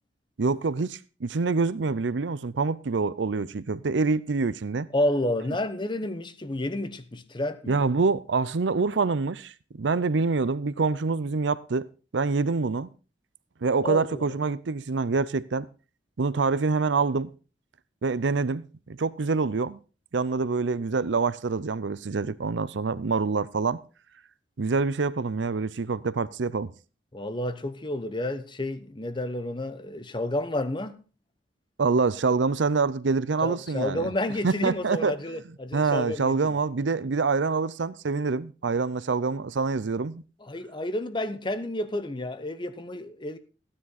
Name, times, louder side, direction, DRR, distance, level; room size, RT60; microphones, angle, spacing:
voice 1, 0.4-4.9 7.7-11.9 12.1-12.9 13.6-15.7 16.2-17.3 18.0-19.8 20.1-23.8 24.6-26.7 31.8-34.1 34.4-35.1 35.7-40.2, right 4 dB, 90° right, 0.6 m, -26 dB
voice 2, 4.9-7.8 13.8-14.4 27.1-31.0 33.4-36.6 40.4-43.4, left 1 dB, 25° left, 1.0 m, -30 dB
15.5 x 9.8 x 4.1 m
head